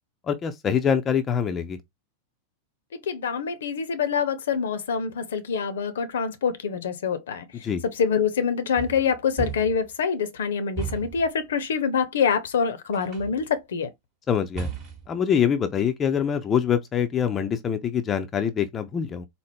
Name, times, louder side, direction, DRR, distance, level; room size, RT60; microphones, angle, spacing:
voice 1, 0.3-1.8 7.6-7.8 14.3-14.7 15.1-19.3, left 8 dB, 25° left, 0.4 m, -24 dB
voice 2, 2.9-7.5 7.8-13.9, left 6 dB, 60° left, 0.6 m, -25 dB
sound 1, 8.8-9.9 10.8-11.3 12.9-13.4 14.6-15.2, right 6 dB, 40° right, 1.0 m, -34 dB
4.3 x 2.0 x 3.5 m
figure-of-eight pair, 90°, 0 cm